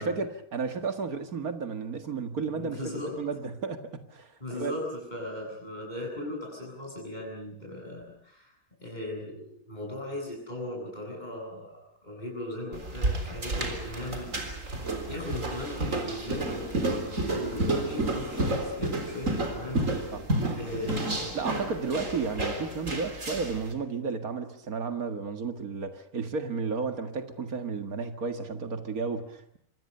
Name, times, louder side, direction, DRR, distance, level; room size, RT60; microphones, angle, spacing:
voice 1, 0.0-4.7 20.1-20.2 21.3-29.6, right 5 dB, 80° right, 2.3 m, -33 dB
voice 2, 2.4-3.2 4.4-8.5 8.8-20.2 20.6-21.6, left 1 dB, 30° left, 7.8 m, -38 dB
sound 1, 12.7-23.6, right 2 dB, 60° right, 4.1 m, -31 dB
26.5 x 25.0 x 6.7 m
omnidirectional pair, 1.5 m